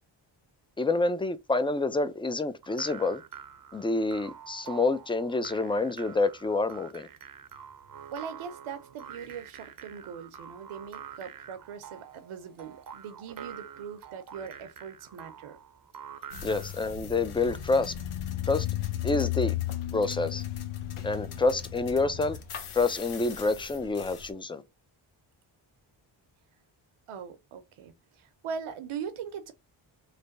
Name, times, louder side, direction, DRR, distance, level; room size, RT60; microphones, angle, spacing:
voice 1, 0.8-3.2 3.7-7.1 16.4-17.9 18.5-18.7 19.0-19.5 19.9-20.4 21.0-22.4 22.7-24.6, left 3 dB, 10° left, 0.4 m, -27 dB
sound 1, 2.6-16.8, right 8 dB, 45° right, 0.6 m, -46 dB
voice 2, 8.1-15.6 27.1-29.5, right 7 dB, 80° right, 0.8 m, -41 dB
sound 2, 16.3-24.3, left 12 dB, 85° left, 0.8 m, -35 dB
3.3 x 2.2 x 3.8 m
cardioid pair, 65°, 49 cm